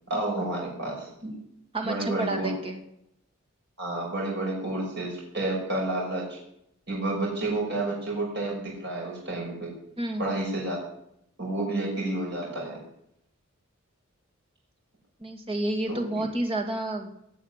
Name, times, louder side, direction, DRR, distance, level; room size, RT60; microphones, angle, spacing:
voice 1, 0.1-1.3 1.8-2.5 3.8-6.4 6.9-9.7 10.2-10.8 11.4-12.8 15.9-16.0, right 2 dB, 55° right, -3 dB, 6.0 m, -30 dB
voice 2, 1.7-2.8 10.0-10.3 15.2-17.1, right 1 dB, 25° right, 2 dB, 2.2 m, -30 dB
17.5 x 7.1 x 10.0 m, 0.77 s
head